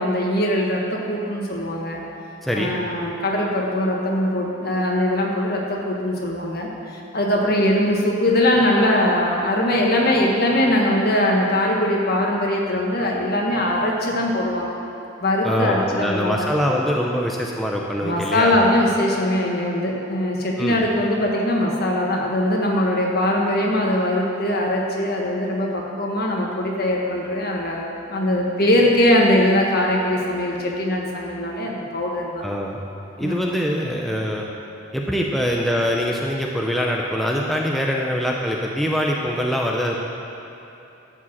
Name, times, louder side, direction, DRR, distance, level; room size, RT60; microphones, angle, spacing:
voice 1, 0.0-2.0 2.5-14.7 15.2-16.4 18.0-32.5 33.2-33.5, left 1 dB, 55° left, -1 dB, 1.5 m, -21 dB
voice 2, 2.4-2.7 15.4-18.5 20.6-20.8 32.4-32.8 33.2-34.5 34.9-40.0, equal, ahead, -2 dB, 0.6 m, -23 dB
12.0 x 5.0 x 7.3 m, 2.9 s
head